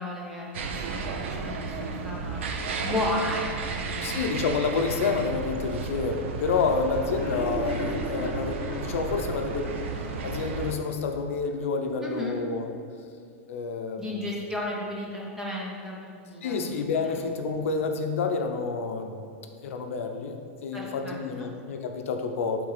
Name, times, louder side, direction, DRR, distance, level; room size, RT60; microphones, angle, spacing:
voice 1, 0.0-2.4 2.8-4.2 12.0-12.4 14.0-16.7 17.0-17.1 20.7-21.5, left 1 dB, 5° right, -4 dB, 0.7 m, -34 dB
sound 1, 0.5-10.7, right 4 dB, 60° right, 0.6 m, -33 dB
voice 2, 4.0-9.7 10.2-12.7 13.5-14.1 16.4-22.7, left 4 dB, 75° left, 4 dB, 0.6 m, -29 dB
sound 2, 7.0-10.2 10.6-10.7 11.0-11.1 11.5-11.6, left 1 dB, 20° left, 0.9 m, -35 dB
8.8 x 3.5 x 3.2 m, 2.5 s
supercardioid pair, 180°, 7 cm